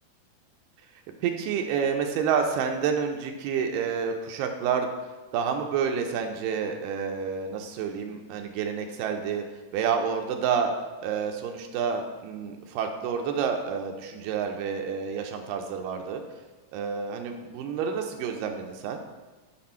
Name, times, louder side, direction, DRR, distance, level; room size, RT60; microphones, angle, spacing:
voice 1, 1.2-4.9 5.3-9.4 9.7-10.7 11.0-16.2 16.7-19.0, right 6 dB, 85° right, 4 dB, 2.2 m, -29 dB
5.8 x 4.2 x 4.3 m, 1.2 s
omnidirectional pair, 3.8 m